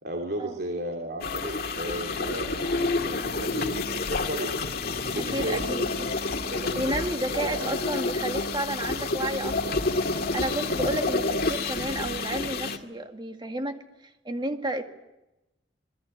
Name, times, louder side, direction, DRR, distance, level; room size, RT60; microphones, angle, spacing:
voice 1, 0.0-4.5 5.1-6.8 7.3-7.7 10.4-10.7, right 1 dB, 60° right, 1 dB, 3.3 m, -35 dB
sound 1, 1.2-12.8, left 3 dB, 55° left, 2.1 m, -29 dB
voice 2, 5.3-5.9 6.8-9.8 10.3-13.8 14.2-14.8, right 1 dB, 25° right, 5 dB, 2.2 m, -31 dB
27.0 x 20.5 x 9.1 m, 0.97 s
head